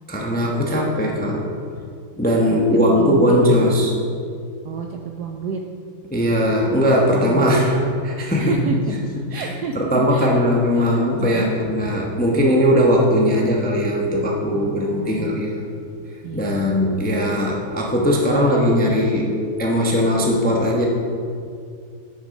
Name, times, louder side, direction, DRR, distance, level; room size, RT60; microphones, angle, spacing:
voice 1, 0.1-1.5 2.1-3.9 6.1-8.6 9.3-15.6 16.3-20.8, equal, 10° left, -1 dB, 0.5 m, -19 dB
voice 2, 2.5-3.4 3.6-3.8 4.6-5.6 7.1-7.7 8.4-9.0 9.3-11.9 14.5-15.4 16.2-16.6, right 5 dB, 75° right, 3 dB, 0.9 m, -30 dB
9.3 x 7.0 x 5.3 m, 2.4 s
omnidirectional pair, 2.2 m